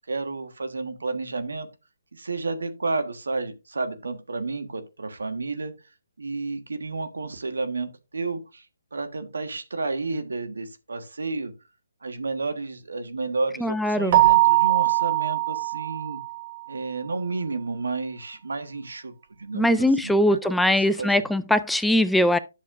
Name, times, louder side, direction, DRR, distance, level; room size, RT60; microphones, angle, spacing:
voice 1, 0.1-1.7 2.1-5.7 6.2-8.6 8.9-11.5 12.0-16.2 16.7-21.2, right 3 dB, 80° right, 1.4 m, -31 dB
voice 2, 13.6-14.2 19.5-22.4, left 1 dB, ahead, 0.3 m, -21 dB
Keyboard (musical), 14.1-16.6, right 18 dB, 35° right, 0.8 m, -21 dB
10.5 x 6.5 x 2.5 m
hypercardioid pair, 150°, 0 cm